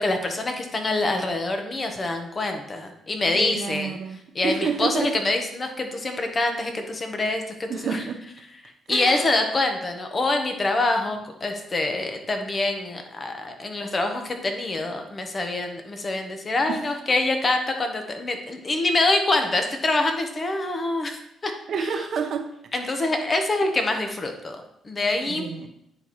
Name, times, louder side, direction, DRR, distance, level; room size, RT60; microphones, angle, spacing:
voice 1, 0.0-8.0 8.6-21.5 21.8-21.9 22.7-24.6 24.8-25.5, left 2 dB, 30° left, 1.1 m, -25 dB
voice 2, 3.3-5.1 7.7-8.2 8.9-9.4 16.7-16.8 21.7-22.5 22.8-23.0 25.3-25.7, right 6 dB, 60° right, 0.8 m, -29 dB
9.3 x 4.3 x 3.1 m
cardioid pair, 90°, 0 cm